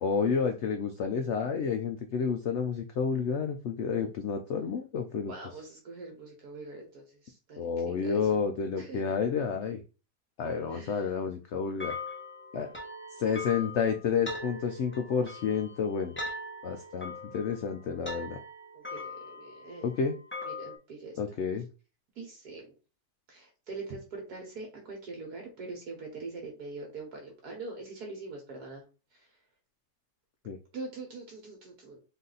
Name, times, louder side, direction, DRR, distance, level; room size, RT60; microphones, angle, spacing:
voice 1, 0.0-5.3 7.6-9.8 10.4-12.0 12.5-12.7 13.2-16.2 16.6-18.4 19.8-20.2 21.2-21.7 30.5-30.6, left 6 dB, 70° left, 6 dB, 0.6 m, -30 dB
voice 2, 5.3-8.2 8.8-9.0 10.7-11.1 18.7-19.9 20.4-21.2 22.2-22.7 23.3-28.8 30.7-32.0, right 3 dB, 65° right, 1 dB, 1.6 m, -43 dB
sound 1, 11.8-20.8, left 2 dB, 10° left, 0.7 m, -41 dB
4.1 x 2.7 x 3.9 m, 0.33 s
omnidirectional pair, 1.8 m